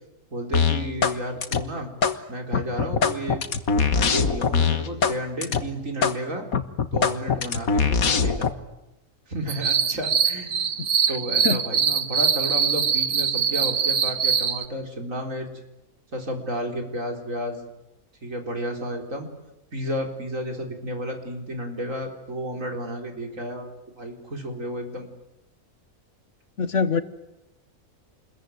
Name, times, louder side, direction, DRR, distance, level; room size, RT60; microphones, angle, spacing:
voice 1, 0.3-1.9 2.3-3.4 3.9-6.5 6.9-8.5 9.3-10.7 11.1-15.5 16.1-17.6 18.2-19.3 19.7-25.1, equal, 65° right, 3 dB, 4.4 m, -32 dB
sound 1, 0.5-1.2 1.4-2.2 2.5-5.2 5.4-5.6 6.0-6.2 6.5-8.5, left 5 dB, 75° left, 1.8 m, -22 dB
sound 2, 9.5-14.6, right 7 dB, 85° right, 1.7 m, -23 dB
voice 2, 26.6-27.0, left 5 dB, 55° left, 12 dB, 1.5 m, -22 dB
29.0 x 21.5 x 9.3 m, 0.91 s
omnidirectional pair, 1.5 m